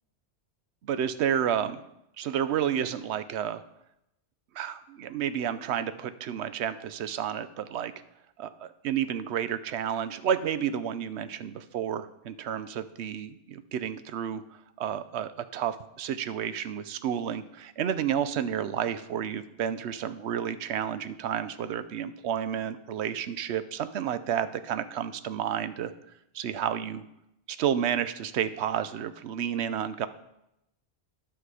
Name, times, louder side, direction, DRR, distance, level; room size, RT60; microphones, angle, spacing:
voice 1, 0.8-1.8 2.2-3.6 4.5-7.9 8.4-14.4 14.8-25.9 26.3-27.0 27.5-30.1, right 9 dB, 80° right, 12 dB, 0.9 m, -31 dB
11.0 x 5.9 x 4.8 m, 0.83 s
omnidirectional pair, 1.1 m